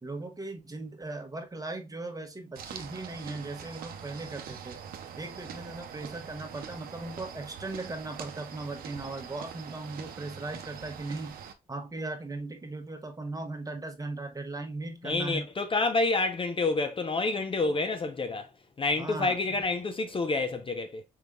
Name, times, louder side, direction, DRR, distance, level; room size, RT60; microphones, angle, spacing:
voice 1, 0.0-4.8 5.2-11.3 11.7-15.5 18.9-19.4, right 2 dB, 25° right, 1.1 m, -38 dB
sound 1, 2.6-11.5, right 8 dB, 70° right, 0.7 m, -43 dB
voice 2, 15.0-18.5 18.8-21.0, left 3 dB, 35° left, 0.6 m, -28 dB
4.7 x 3.4 x 2.4 m
supercardioid pair, 60°, 16 cm